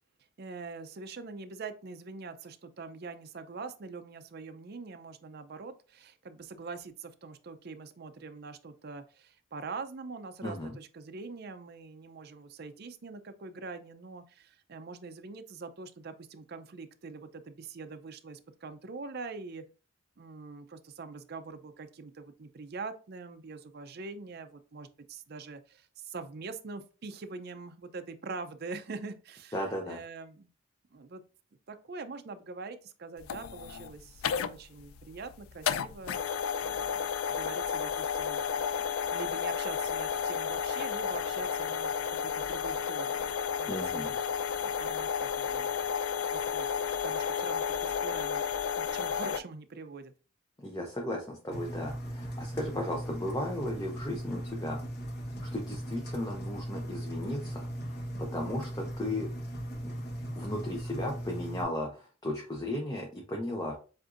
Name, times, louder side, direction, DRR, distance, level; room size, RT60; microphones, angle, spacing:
voice 1, 0.4-19.6 20.2-29.6 29.9-30.5 30.9-31.2 31.7-36.3 36.7-37.0 37.3-38.4 39.1-43.3 43.6-44.2 44.6-45.7 46.3-46.7 47.0-48.4 48.8-50.1, right 4 dB, 50° right, 8 dB, 0.5 m, -43 dB
voice 2, 10.4-10.8 29.5-30.0 43.7-44.1 50.6-54.8 55.4-57.7 58.2-59.3 59.8-59.9 60.3-63.7, left 1 dB, 20° left, 0 dB, 0.7 m, -35 dB
sound 1, 33.2-49.4, left 7 dB, 85° left, 0.4 m, -32 dB
Engine, 51.5-61.6, right 1 dB, 50° left, 1.0 m, -38 dB
7.6 x 2.6 x 2.5 m, 0.35 s
head